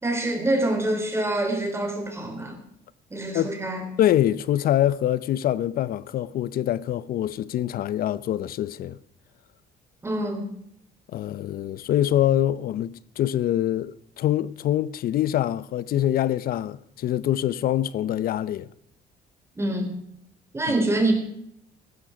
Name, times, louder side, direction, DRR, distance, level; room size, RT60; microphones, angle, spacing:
voice 1, 0.0-2.6 3.1-3.9 10.0-10.5 19.6-19.9 20.5-21.1, right 1 dB, 15° right, 3.7 m, -25 dB
voice 2, 4.0-9.0 11.1-18.7, left 12 dB, 60° left, 0.7 m, -24 dB
15.5 x 12.5 x 5.1 m
cardioid pair, 110°, 17 cm